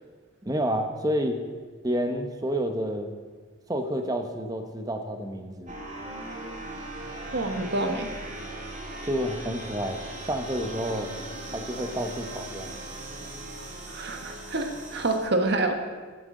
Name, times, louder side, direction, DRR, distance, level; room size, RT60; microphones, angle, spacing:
voice 1, 0.4-1.4 1.8-3.1 3.7-5.8 9.0-10.0 10.3-11.1 11.5-12.8, equal, 20° right, 5 dB, 0.9 m, -29 dB
sound 1, 5.7-15.2, right 1 dB, 40° right, 2.0 m, -39 dB
voice 2, 7.3-8.1 13.9-15.7, right 2 dB, 55° right, 5 dB, 1.3 m, -27 dB
15.0 x 11.0 x 3.8 m, 1.5 s
head